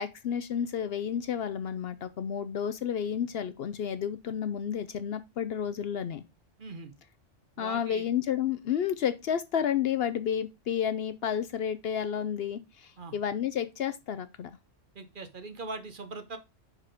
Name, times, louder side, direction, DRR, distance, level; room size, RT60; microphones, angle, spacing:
voice 1, 0.0-6.2 7.6-14.5, left 8 dB, 60° left, 0.7 m, -31 dB
voice 2, 6.6-6.9 7.6-8.1 13.0-13.2 14.9-16.4, right 3 dB, 45° right, 1.0 m, -41 dB
5.9 x 4.9 x 4.9 m
omnidirectional pair, 1.3 m